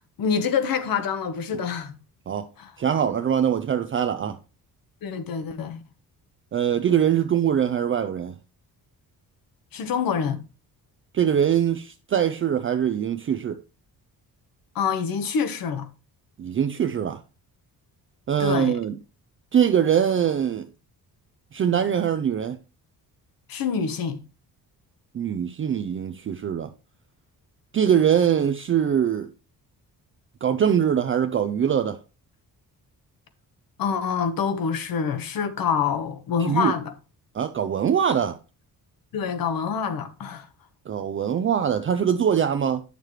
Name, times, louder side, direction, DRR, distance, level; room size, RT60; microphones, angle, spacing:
voice 1, 0.0-2.0 2.6-2.7 5.0-5.8 9.7-10.4 14.7-15.9 18.4-18.8 23.5-24.2 33.8-36.9 39.1-40.5, left 6 dB, 65° left, 1.2 m, -26 dB
voice 2, 2.8-4.4 6.5-8.3 11.1-13.6 16.4-17.2 18.3-18.9 19.5-20.7 21.5-22.6 25.1-26.7 27.7-29.3 30.4-32.0 36.4-36.7 37.3-38.4 40.9-42.8, right 8 dB, 35° right, 0.5 m, -23 dB
9.1 x 6.6 x 3.1 m
cardioid pair, 155°, 37 cm